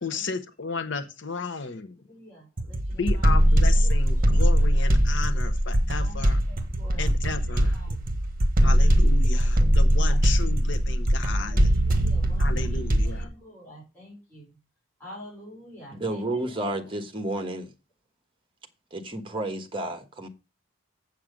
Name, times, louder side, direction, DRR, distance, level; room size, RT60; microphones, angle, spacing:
voice 1, 0.0-2.0 3.0-6.4 7.0-7.8 8.6-11.6 12.4-13.3, left 4 dB, 60° left, 0.9 m, -33 dB
voice 2, 2.1-4.4 5.8-7.3 7.7-8.2 9.3-9.7 10.1-10.2 10.8-11.0 11.3-14.5 15.0-17.3, equal, 10° left, 5.3 m, -48 dB
sound 1, 2.6-13.2, equal, 40° right, 1.3 m, -21 dB
voice 3, 15.9-17.7 18.9-20.3, right 1 dB, 25° right, 1.3 m, -31 dB
7.5 x 7.4 x 5.1 m
head